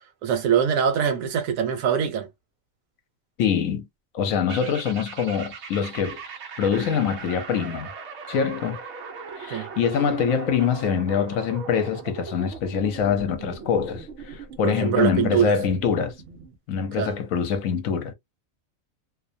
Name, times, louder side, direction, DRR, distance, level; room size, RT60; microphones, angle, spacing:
voice 1, 0.2-2.3 9.5-9.7 14.6-15.5 17.0-17.1, right 8 dB, 85° right, 1.1 m, -23 dB
voice 2, 3.4-3.9 4.1-6.2 6.6-7.9 8.3-8.8 9.4-16.1 16.7-18.1, left 7 dB, 80° left, 1.1 m, -24 dB
sound 1, 4.5-16.6, right 5 dB, 65° right, 0.9 m, -39 dB
2.5 x 2.1 x 2.5 m
omnidirectional pair, 1.4 m